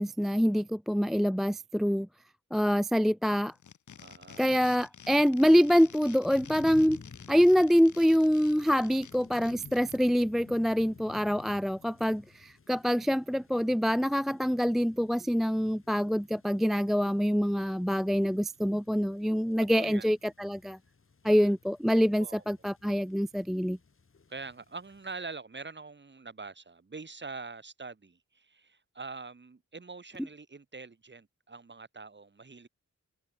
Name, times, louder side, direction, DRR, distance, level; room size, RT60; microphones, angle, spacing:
voice 1, 0.0-2.1 2.5-3.5 4.4-7.0 7.3-20.8 21.2-23.8, equal, ahead, 0.3 m, -25 dB
sound 1, 3.5-10.2, left 7 dB, 90° left, 6.8 m, -51 dB
voice 2, 4.0-4.7 19.7-20.1 21.2-21.5 22.2-22.4 24.3-32.7, right 4 dB, 40° right, 7.7 m, -44 dB
sound 2, 6.2-25.1, left 4 dB, 45° left, 7.6 m, -54 dB
wide cardioid pair, 110°, 29 cm